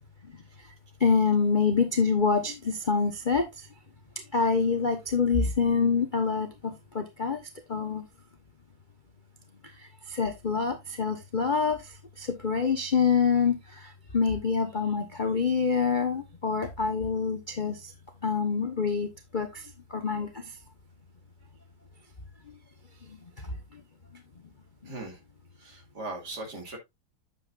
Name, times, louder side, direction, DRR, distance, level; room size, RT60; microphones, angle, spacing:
voice 1, 1.0-3.5 4.3-7.4 7.7-8.0 10.1-11.8 12.2-17.9 18.2-19.1 19.3-19.6 19.9-20.3, left 5 dB, 35° left, 0.8 m, -26 dB
voice 2, 24.9-25.2 25.6-26.8, right 2 dB, 55° right, 2.9 m, -39 dB
9.3 x 7.5 x 2.5 m
omnidirectional pair, 2.2 m